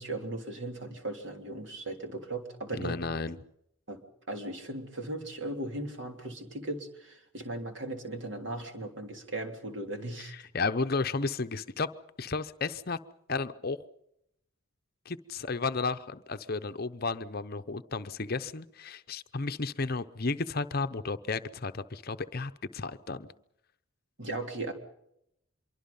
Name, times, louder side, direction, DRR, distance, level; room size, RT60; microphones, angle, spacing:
voice 1, 0.0-3.0 3.9-4.0 4.3-10.3 24.2-24.7, right 2 dB, 60° right, 5 dB, 3.2 m, -37 dB
voice 2, 2.7-3.4 10.5-11.9 12.2-13.0 13.3-13.8 15.1-23.3, left 3 dB, 45° left, 11 dB, 0.8 m, -33 dB
25.5 x 23.5 x 5.5 m, 0.78 s
head